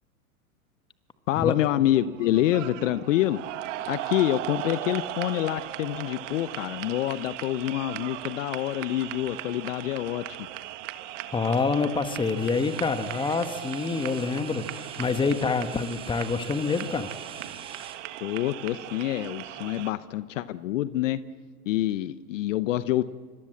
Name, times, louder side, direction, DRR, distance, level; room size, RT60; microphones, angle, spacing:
voice 1, 1.3-3.4 3.9-10.2 18.2-21.2 21.7-23.0, left 14 dB, 55° left, 15 dB, 1.0 m, -27 dB
sound 1, 1.9-19.9, right 14 dB, 55° right, 1.6 m, -38 dB
voice 2, 11.3-17.1, left 4 dB, 10° left, 10 dB, 1.5 m, -27 dB
sound 2, 12.3-18.0, right 4 dB, 10° right, 2.0 m, -47 dB
26.5 x 24.5 x 7.8 m, 1.5 s
hypercardioid pair, 110°, 44 cm